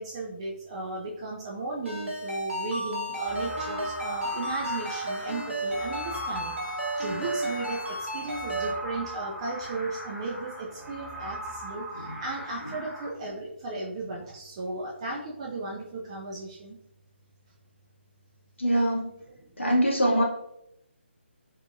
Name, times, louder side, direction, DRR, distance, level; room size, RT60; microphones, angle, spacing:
voice 1, 0.0-16.8 19.3-19.5, right 2 dB, 25° right, -2 dB, 0.3 m, -35 dB
Ringtone, 1.9-8.7, right 1 dB, 80° right, 0.9 m, -33 dB
sound 1, 3.2-13.1, right 1 dB, 10° left, 1.1 m, -39 dB
voice 2, 18.6-19.1 19.6-20.2, equal, 80° left, -3 dB, 0.7 m, -23 dB
2.6 x 2.5 x 2.3 m, 0.77 s
figure-of-eight pair, 145°, 7 cm